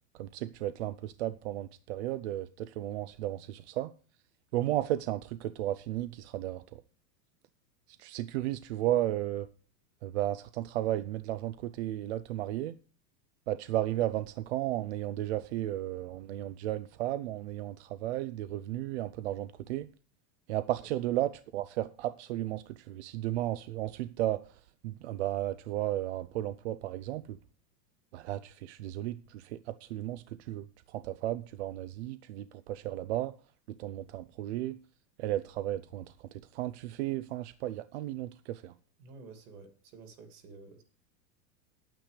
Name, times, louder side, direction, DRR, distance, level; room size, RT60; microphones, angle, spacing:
voice 1, 0.2-3.9 4.5-6.6 8.0-9.5 10.0-12.8 13.5-19.9 20.5-24.4 24.8-27.4 28.1-33.3 33.8-34.8 35.2-36.1 36.5-38.7, right 14 dB, 45° right, 0.5 m, -34 dB
voice 2, 39.0-40.8, right 4 dB, 65° right, 2.8 m, -51 dB
9.5 x 9.1 x 5.1 m
supercardioid pair, 165°, 48 cm